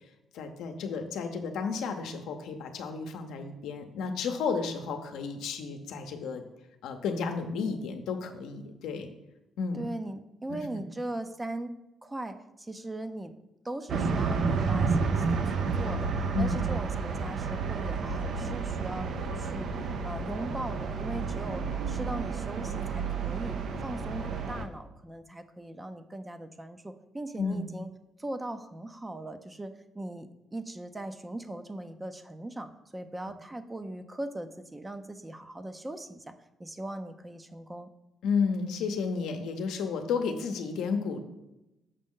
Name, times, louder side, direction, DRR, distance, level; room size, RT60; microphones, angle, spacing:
voice 1, 0.3-6.4 6.8-9.1 9.6-9.9 10.5-10.6 16.3-16.6 27.4-27.6 38.2-41.2, left 5 dB, 85° left, 6 dB, 0.7 m, -32 dB
voice 2, 9.7-11.7 12.0-13.3 13.6-23.6 23.8-27.9 28.2-36.2 36.6-37.9, right 1 dB, 15° right, 9 dB, 0.5 m, -39 dB
sound 1, 13.9-24.6, right 5 dB, 65° right, 0.6 m, -30 dB
6.6 x 5.1 x 3.7 m, 0.93 s
cardioid pair, 90°, 0 cm